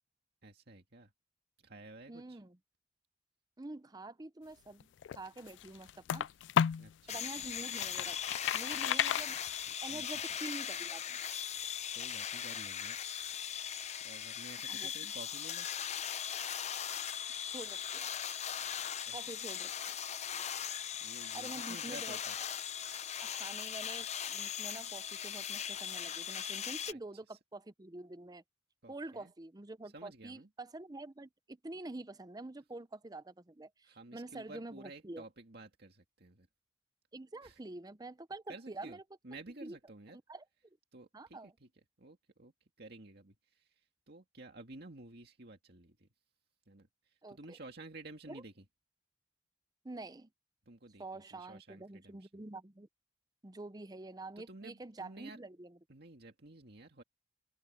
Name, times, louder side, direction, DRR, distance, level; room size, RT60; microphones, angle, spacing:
voice 1, 0.4-1.1 1.6-2.4 6.2-6.3 6.7-7.5 9.9-10.0 11.9-13.0 14.0-15.7 19.1-19.2 21.0-22.3 26.8-27.0 27.3-27.4 28.8-29.3 29.9-30.5 33.8-36.5 37.4-37.6 38.5-39.0 39.2-40.2 40.9-41.7 42.0-42.5 42.8-46.1 46.7-48.6 50.7-52.4 54.4-55.4 55.9-57.0, right 2 dB, 60° right, 2.1 m, -52 dB
voice 2, 2.1-2.6 3.6-6.3 7.1-8.2 8.5-9.4 9.8-11.2 14.7-15.1 17.5-18.1 19.1-19.7 21.3-22.2 23.2-28.4 28.9-35.2 37.1-39.0 39.6-39.8 40.3-40.8 41.1-41.5 47.2-47.6 48.3-48.4 49.8-50.3 51.0-52.9 53.4-55.8, right 2 dB, 20° right, 0.7 m, -47 dB
sound 1, 4.8-6.9 7.4-9.9, left 9 dB, 75° left, 0.3 m, -33 dB
sound 2, 7.1-26.9, left 9 dB, 35° left, 0.7 m, -39 dB
open air
head